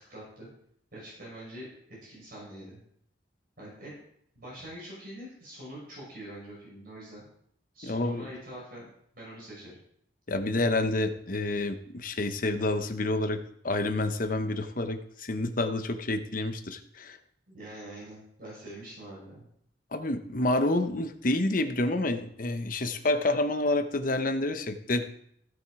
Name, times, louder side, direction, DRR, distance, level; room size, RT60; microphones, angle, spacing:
voice 1, 0.1-0.5 0.9-1.7 2.0-2.8 3.6-3.9 4.3-7.3 7.7-8.9 9.1-9.8 17.5-19.5, right 1 dB, 50° right, -5 dB, 5.7 m, -44 dB
voice 2, 7.8-8.3 10.3-17.2 19.9-25.1, left 2 dB, 50° left, 7 dB, 1.0 m, -28 dB
15.5 x 6.4 x 4.8 m, 0.69 s
head